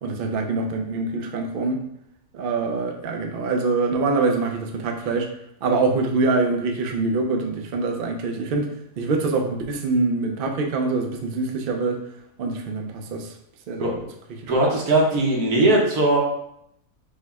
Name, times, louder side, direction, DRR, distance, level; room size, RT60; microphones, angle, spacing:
voice 1, 0.0-1.8 2.3-5.3 5.6-8.7 9.0-12.0 12.4-13.3 13.7-13.9 14.4-14.5, right 3 dB, 60° right, 3 dB, 0.6 m, -24 dB
voice 2, 14.5-16.2, right 1 dB, 85° right, -2 dB, 1.5 m, -19 dB
5.4 x 2.1 x 3.5 m, 0.76 s
omnidirectional pair, 1.6 m